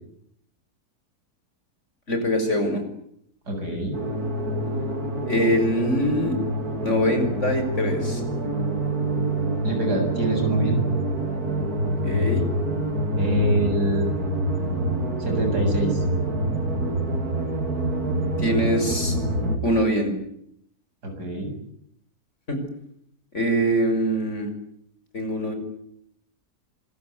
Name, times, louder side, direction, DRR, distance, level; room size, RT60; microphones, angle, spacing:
voice 1, 2.1-2.8 5.3-6.4 6.8-8.2 12.0-12.4 18.4-19.2 19.6-20.1 22.5-22.6 23.3-24.5 25.1-25.5, equal, 45° left, 6 dB, 6.4 m, -23 dB
voice 2, 3.5-3.9 9.6-10.8 13.1-14.1 15.2-16.0 21.0-21.5, right 1 dB, 85° right, 4 dB, 8.3 m, -25 dB
Arpeg Discord Tension, 3.9-19.6, right 1 dB, 70° right, 3.9 m, -26 dB
26.0 x 22.5 x 9.6 m, 0.71 s
omnidirectional pair, 1.7 m